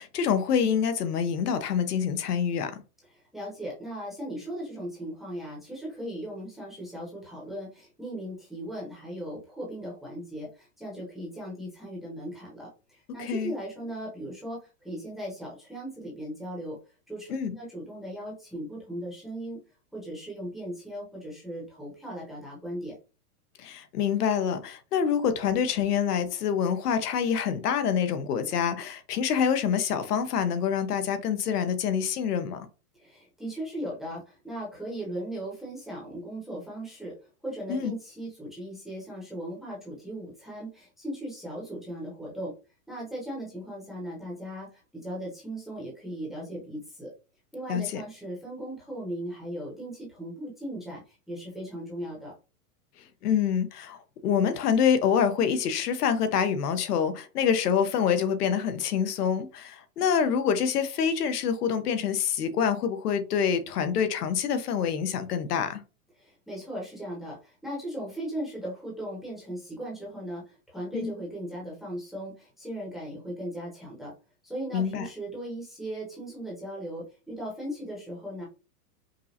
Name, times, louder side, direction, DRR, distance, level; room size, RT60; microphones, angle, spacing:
voice 1, 0.0-2.8 13.2-13.5 17.3-17.6 23.6-32.7 37.7-37.9 47.7-48.0 53.2-65.8 70.9-71.1 74.7-75.1, left 7 dB, 80° left, 0.9 m, -26 dB
voice 2, 3.1-16.8 17.1-19.6 19.9-23.0 32.9-37.2 37.4-42.5 42.9-47.1 47.5-52.3 66.2-74.1 74.4-78.5, right 1 dB, ahead, 0.8 m, -38 dB
5.2 x 2.1 x 2.8 m
supercardioid pair, 165°, 46 cm